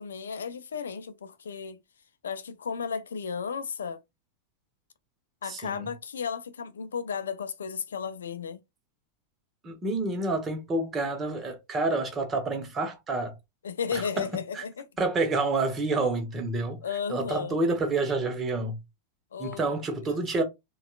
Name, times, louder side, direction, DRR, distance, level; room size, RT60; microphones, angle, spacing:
voice 1, 0.0-1.8 2.2-4.0 5.4-8.6 13.6-14.8 16.8-17.6 19.3-19.6 20.1-20.2, left 6 dB, 65° left, 0.4 m, -34 dB
voice 2, 5.4-5.9 9.6-13.4 13.9-14.6 15.0-16.8 17.1-18.8 19.4-20.4, right 2 dB, 20° right, 1.0 m, -28 dB
4.1 x 2.3 x 2.4 m
figure-of-eight pair, 90°, 0 cm